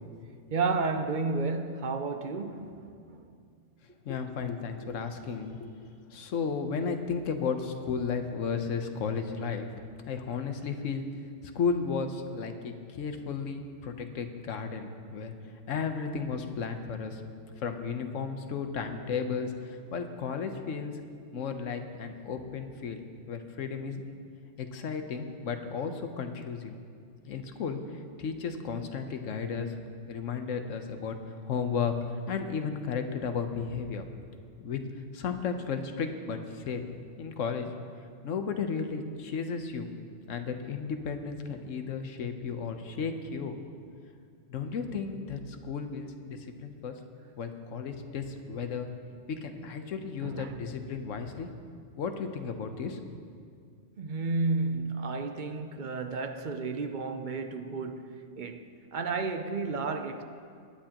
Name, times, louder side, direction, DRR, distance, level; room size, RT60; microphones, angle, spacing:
voice 1, 0.5-3.2 50.2-50.6 54.0-60.2, right 4 dB, 50° right, 0.6 m, -32 dB
voice 2, 4.0-9.7 10.1-11.1 11.5-15.3 15.7-17.2 17.5-20.9 21.3-24.0 24.6-26.8 27.2-29.7 30.1-31.2 31.5-34.1 34.6-34.8 35.1-36.8 37.2-37.7 38.2-39.9 40.3-43.6 44.5-46.9 47.4-48.9 49.3-51.5 52.0-53.2, left 5 dB, 85° left, 1.2 m, -34 dB
20.0 x 9.9 x 2.9 m
omnidirectional pair, 1.3 m